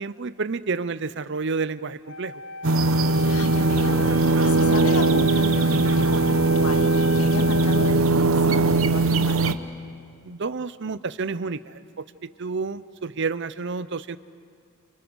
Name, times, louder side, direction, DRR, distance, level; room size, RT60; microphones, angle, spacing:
voice 1, 0.0-2.4 10.2-12.0 12.4-14.2, right 4 dB, 55° right, 15 dB, 0.7 m, -30 dB
Wind instrument woodwind instrument, 2.1-8.0, left 2 dB, 60° left, 0.8 m, -35 dB
sound 1, 2.6-9.5, right 3 dB, 70° right, 1.0 m, -20 dB
voice 2, 3.3-9.6, left 2 dB, 85° left, 5 dB, 2.2 m, -34 dB
29.0 x 29.0 x 6.3 m, 2.3 s
head